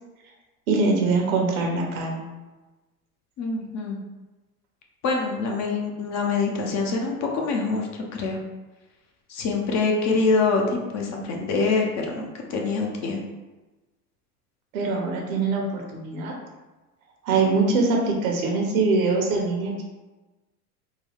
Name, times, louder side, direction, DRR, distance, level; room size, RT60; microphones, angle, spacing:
voice 1, 0.7-2.2 14.7-16.3 17.2-19.8, right 3 dB, 65° right, 0 dB, 1.0 m, -23 dB
voice 2, 3.4-4.0 5.0-8.4 9.3-10.6 10.9-13.2, left 4 dB, 35° left, 0 dB, 0.7 m, -25 dB
3.7 x 2.2 x 3.4 m, 1.1 s
hypercardioid pair, 90°, 45 cm